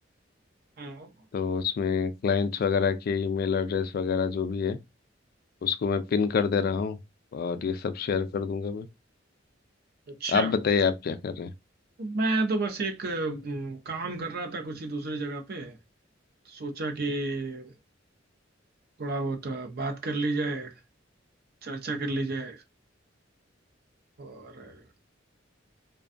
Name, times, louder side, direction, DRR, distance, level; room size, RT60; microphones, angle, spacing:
voice 1, 0.8-1.1 10.1-10.5 12.0-15.8 16.5-17.7 19.0-20.8 21.6-22.6 24.2-24.9, right 2 dB, 55° right, 0.6 m, -31 dB
voice 2, 1.3-4.8 5.6-7.0 7.3-8.9 10.3-11.5, left 6 dB, 55° left, 0.3 m, -27 dB
2.5 x 2.2 x 2.4 m
head